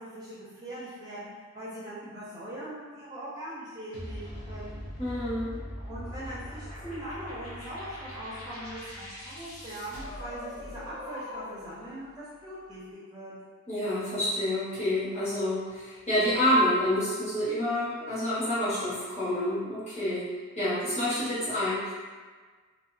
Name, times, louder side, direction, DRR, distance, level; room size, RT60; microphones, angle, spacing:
voice 1, 0.0-4.8 5.9-13.3, right 1 dB, 20° right, -9 dB, 0.4 m, -41 dB
sound 1, 3.9-11.7, equal, 70° left, 0.8 m, -41 dB
voice 2, 5.0-5.5 13.7-20.3 20.5-21.9, left 1 dB, 30° left, -12 dB, 1.3 m, -28 dB
2.7 x 2.3 x 2.6 m, 1.5 s
head